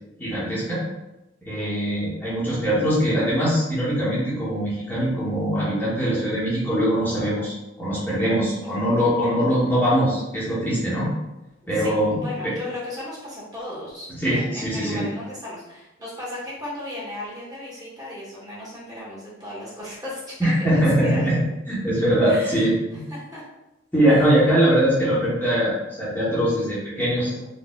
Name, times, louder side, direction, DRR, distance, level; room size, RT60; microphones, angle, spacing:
voice 1, 0.2-0.8 1.4-11.1 11.7-12.5 14.2-15.0 20.4-23.0 23.9-27.4, equal, 10° left, -10 dB, 0.9 m, -22 dB
voice 2, 11.6-21.3 22.2-22.7 23.1-23.4 24.1-24.3, left 1 dB, 20° right, -8 dB, 1.1 m, -36 dB
4.1 x 2.2 x 2.2 m, 0.95 s
head